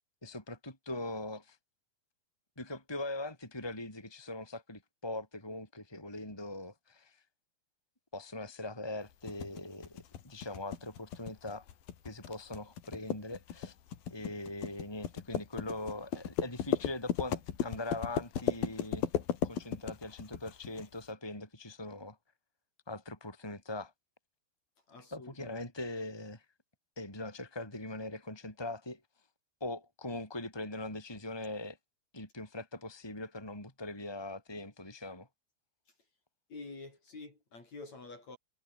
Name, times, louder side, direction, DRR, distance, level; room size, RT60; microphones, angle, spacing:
voice 1, 0.2-1.6 2.6-7.2 8.1-11.6 12.0-13.7 14.1-19.1 19.4-22.2 22.9-23.9 25.1-26.4 27.0-29.0 29.6-31.8 32.1-35.3, left 2 dB, 5° left, 4.8 m, -41 dB
sound 1, 9.3-20.9, left 9 dB, 65° left, 4.0 m, -35 dB
voice 2, 24.9-25.6 36.5-38.4, left 3 dB, 40° left, 7.2 m, -48 dB
omnidirectional pair, 4.7 m